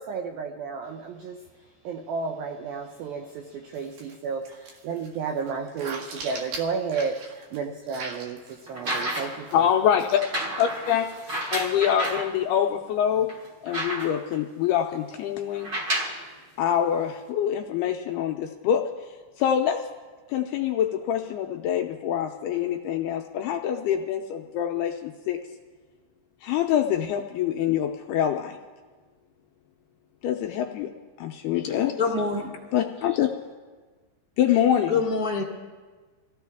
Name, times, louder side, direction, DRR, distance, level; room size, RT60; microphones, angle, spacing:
voice 1, 0.0-9.7, right 5 dB, 80° right, 2.1 m, -32 dB
sound 1, 3.7-4.2 4.5-7.6 7.9-9.6 10.0-10.2 10.6-11.3, right 3 dB, 60° right, 3.0 m, -40 dB
sound 2, 8.7-9.5 10.2-12.3 12.9-13.0 13.3-14.4 15.5-16.2 17.2-17.3, right 1 dB, 35° right, 2.2 m, -31 dB
voice 2, 9.5-10.2 10.6-11.1 11.5-13.3 13.6-15.7 16.6-18.9 19.4-19.8 20.3-25.4 26.4-28.6 30.2-30.9 31.2-31.9 32.7-33.3 34.4-35.0, left 9 dB, 85° left, 2.3 m, -25 dB
voice 3, 31.6-32.5 34.9-35.4, left 4 dB, 10° right, 0.3 m, -26 dB
23.5 x 15.5 x 3.5 m
omnidirectional pair, 5.1 m